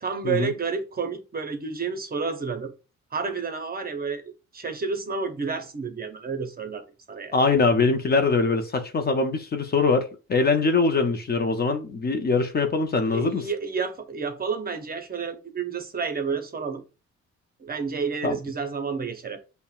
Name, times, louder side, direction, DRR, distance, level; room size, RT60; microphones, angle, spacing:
voice 1, 0.0-2.7 3.1-4.2 4.5-7.4 13.1-16.8 17.6-19.4, right 5 dB, 30° right, 0.7 m, -30 dB
voice 2, 7.3-13.4 18.2-18.4, left 4 dB, 30° left, 0.5 m, -23 dB
5.3 x 2.1 x 2.4 m
cardioid pair, 90°, 30 cm